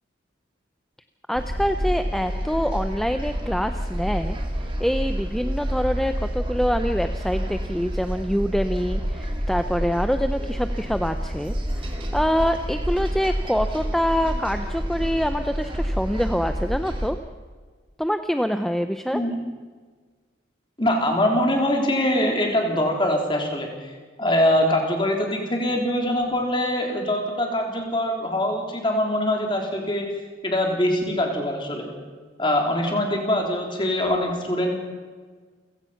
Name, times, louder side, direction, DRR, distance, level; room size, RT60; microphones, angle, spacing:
voice 1, 1.3-4.4 4.8-17.2 18.0-19.2, equal, ahead, 8 dB, 0.6 m, -25 dB
sound 1, 1.3-17.1, equal, 25° right, 2.7 m, -28 dB
voice 2, 20.8-23.9 24.2-30.1 30.4-31.9 32.4-34.7, left 1 dB, 25° left, 1 dB, 3.5 m, -23 dB
29.0 x 16.5 x 5.8 m, 1.5 s
head